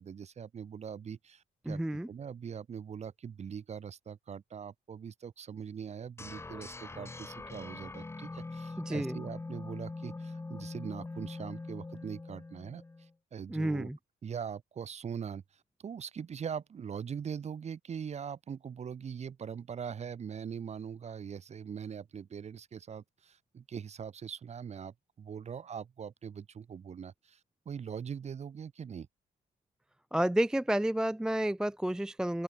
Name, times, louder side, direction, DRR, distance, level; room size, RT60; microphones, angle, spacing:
voice 1, 0.0-13.9 14.2-27.4 27.6-29.1, right 7 dB, 40° right, 6.9 m, -42 dB
voice 2, 1.6-2.1 8.8-9.2 13.5-14.0 30.1-32.4, right 1 dB, 5° right, 0.6 m, -30 dB
sound 1, 6.2-13.1, left 3 dB, 15° left, 2.1 m, -43 dB
open air
cardioid pair, 110°, 17 cm